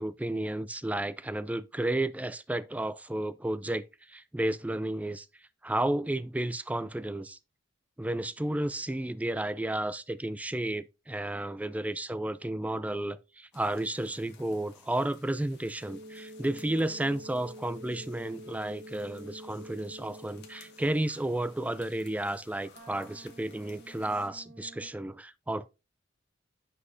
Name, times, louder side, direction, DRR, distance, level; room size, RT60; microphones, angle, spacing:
voice 1, 0.0-5.3 5.6-7.4 8.0-25.7, right 1 dB, 5° right, 0.4 m, -32 dB
sound 1, 13.5-24.3, left 5 dB, 60° left, 1.7 m, -58 dB
sound 2, 15.8-21.1 22.8-24.9, equal, 45° right, 1.6 m, -48 dB
9.5 x 5.7 x 2.7 m
head